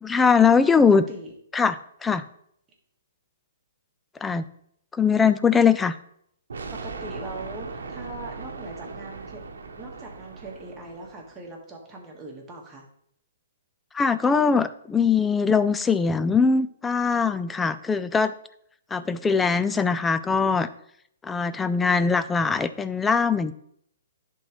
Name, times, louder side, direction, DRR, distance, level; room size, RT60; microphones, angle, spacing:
voice 1, 0.0-1.0 1.5-2.2 4.2-4.4 4.9-6.0 13.9-18.3 18.9-20.7 21.2-23.5, left 5 dB, 10° left, 13 dB, 0.3 m, -21 dB
voice 2, 6.5-9.4 9.7-12.8, right 2 dB, 15° right, -1 dB, 1.5 m, -41 dB
sound 1, 6.5-11.4, right 4 dB, 85° right, 0.9 m, -38 dB
11.0 x 3.8 x 3.1 m, 0.69 s
hypercardioid pair, 150°, 0 cm